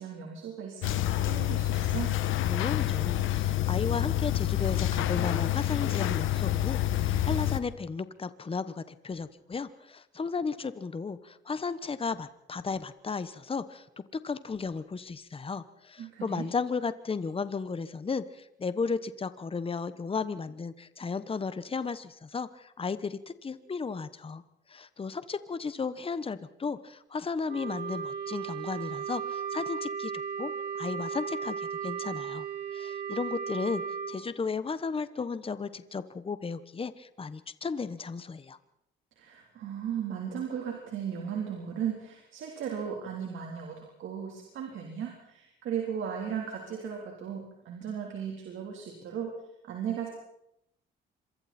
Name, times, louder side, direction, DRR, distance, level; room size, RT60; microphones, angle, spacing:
voice 1, 0.0-2.1 16.0-16.4 39.2-49.3 49.7-50.1, right 8 dB, 75° right, 1 dB, 3.8 m, -36 dB
sound 1, 0.8-7.6, left 13 dB, 85° left, 1.2 m, -28 dB
voice 2, 2.5-24.4 24.7-30.1 30.4-32.5 32.7-38.6, left 5 dB, 30° left, 13 dB, 1.2 m, -34 dB
Wind instrument woodwind instrument, 27.5-34.2, right 7 dB, 55° right, 3.6 m, -35 dB
26.5 x 24.0 x 4.4 m, 0.77 s
cardioid pair, 90°, 20 cm